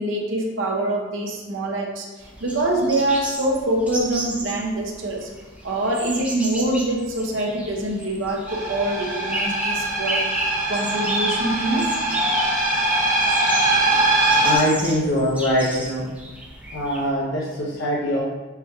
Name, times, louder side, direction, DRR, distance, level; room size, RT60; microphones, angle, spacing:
voice 1, 0.0-5.3 5.6-10.3 10.7-11.9, right 1 dB, 70° right, 0 dB, 0.7 m, -25 dB
sound 1, 2.2-17.1, right 1 dB, 5° right, 0.6 m, -32 dB
sound 2, 8.5-14.6, right 1 dB, 40° right, 0.8 m, -22 dB
voice 2, 14.4-16.0 16.7-18.2, equal, 75° left, -6 dB, 0.7 m, -23 dB
6.7 x 3.0 x 2.3 m, 1.2 s
head